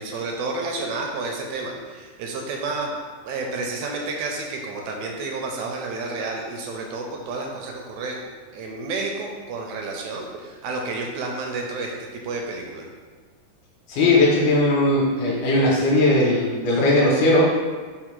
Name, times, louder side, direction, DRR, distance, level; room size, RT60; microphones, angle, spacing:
voice 1, 0.0-2.9 3.3-8.2 8.5-12.9, right 3 dB, 80° right, 1 dB, 1.7 m, -30 dB
voice 2, 13.9-17.5, left 2 dB, 75° left, -4 dB, 2.3 m, -18 dB
5.2 x 2.1 x 4.3 m, 1.4 s
omnidirectional pair, 3.7 m